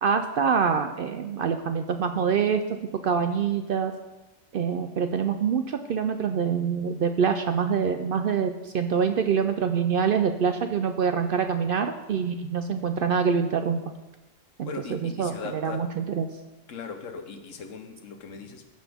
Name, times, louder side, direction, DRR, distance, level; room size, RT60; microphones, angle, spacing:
voice 1, 0.0-2.6 3.0-3.9 4.5-13.8 14.6-15.3 15.6-16.3, right 6 dB, 60° right, 8 dB, 0.6 m, -25 dB
voice 2, 14.6-15.9 16.7-18.7, left 5 dB, 80° left, 6 dB, 1.3 m, -38 dB
14.5 x 6.0 x 3.5 m, 1.1 s
omnidirectional pair, 1.3 m